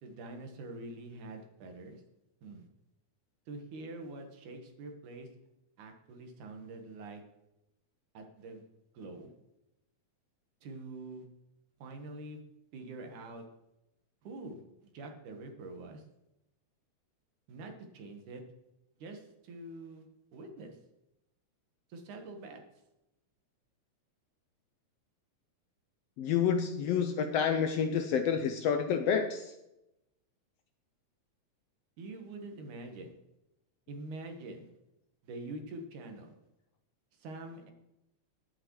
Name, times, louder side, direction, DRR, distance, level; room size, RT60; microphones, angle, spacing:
voice 1, 0.0-2.0 2.4-2.7 3.5-5.3 5.8-7.2 8.1-8.7 8.9-9.3 10.6-11.2 11.8-12.4 12.7-13.4 14.2-16.0 17.5-18.4 19.0-20.1 20.3-20.8 21.9-22.6 32.0-33.1 33.9-34.7 35.2-36.3 37.2-37.7, right 2 dB, 85° right, 4 dB, 2.9 m, -45 dB
voice 2, 26.2-29.5, left 7 dB, 75° left, 7 dB, 1.5 m, -29 dB
20.0 x 6.8 x 3.1 m, 0.88 s
omnidirectional pair, 3.4 m